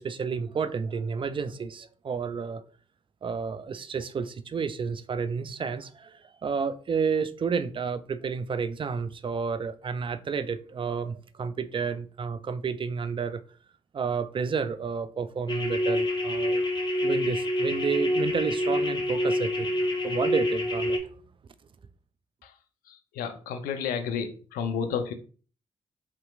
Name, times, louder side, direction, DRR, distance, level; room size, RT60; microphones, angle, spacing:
voice 1, 0.0-2.6 3.2-13.4 13.9-16.6 17.0-19.7 20.0-21.0, right 5 dB, 35° right, 0.4 m, -31 dB
sound 1, 15.5-21.0, left 1 dB, 30° left, 0.9 m, -27 dB
voice 2, 22.9-25.1, left 6 dB, 70° left, 0.5 m, -31 dB
3.3 x 2.9 x 2.3 m
hypercardioid pair, 40°, 15 cm